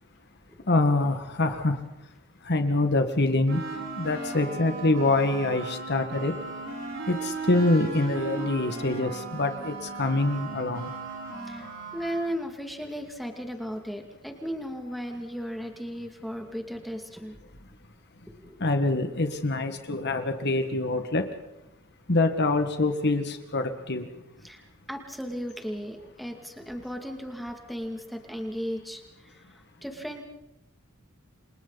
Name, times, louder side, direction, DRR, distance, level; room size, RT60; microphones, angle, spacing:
voice 1, 0.7-1.8 2.5-3.6 4.0-6.3 7.1-10.9 18.6-21.2 22.1-24.1, left 2 dB, 55° left, 7 dB, 1.8 m, -25 dB
sound 1, 3.5-12.3, right 3 dB, 65° right, 6.8 m, -37 dB
voice 2, 11.4-17.4 18.3-18.6 24.4-30.2, equal, ahead, 3 dB, 2.5 m, -36 dB
29.5 x 26.0 x 4.2 m, 0.93 s
head